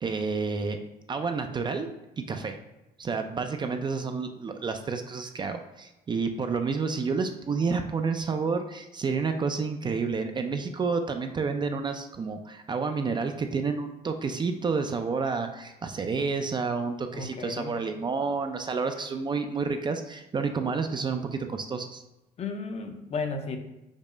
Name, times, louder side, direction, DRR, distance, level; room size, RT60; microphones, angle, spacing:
voice 1, 0.0-0.8 1.1-1.9 2.2-2.6 3.0-22.0, right 4 dB, 25° right, 6 dB, 0.4 m, -30 dB
voice 2, 17.1-17.8 22.4-23.6, left 4 dB, 40° left, 6 dB, 0.6 m, -34 dB
5.3 x 2.0 x 4.8 m, 0.95 s
cardioid pair, 110°, 17 cm